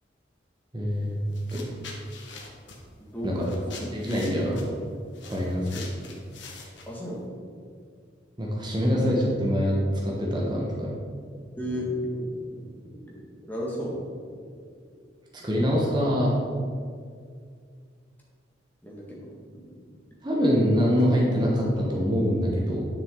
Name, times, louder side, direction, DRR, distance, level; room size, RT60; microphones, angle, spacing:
voice 1, 0.7-1.2 1.5-1.6 3.2-3.5 3.9-4.6 5.3-5.9 8.4-9.8 10.0-10.9 15.4-16.4 20.2-22.9, equal, 25° right, -3 dB, 1.2 m, -24 dB
sound 1, 0.9-1.0 1.3-7.2, left 4 dB, 70° left, 1.3 m, -45 dB
voice 2, 3.0-3.6 6.9-7.2 11.6-12.3 12.6-12.7 13.1-13.2 13.5-14.0 18.8-19.3 19.5-19.8, equal, 10° left, -4 dB, 1.8 m, -33 dB
10.5 x 6.0 x 3.8 m, 2.1 s
head